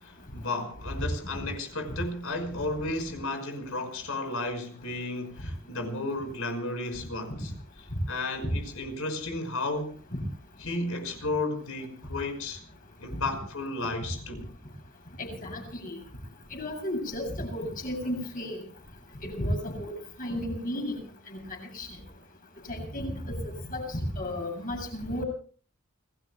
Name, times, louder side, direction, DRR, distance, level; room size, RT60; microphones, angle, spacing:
voice 1, 0.0-7.5 7.8-10.0 10.6-12.6 13.0-14.5, left 2 dB, 80° left, 5.3 m, -33 dB
voice 2, 15.2-16.0 16.5-18.6 19.2-19.9 20.2-20.9 21.3-21.4 21.7-21.9 22.7-23.4 23.7-25.2, left 1 dB, 40° left, 7.7 m, -33 dB
29.0 x 19.5 x 2.3 m
head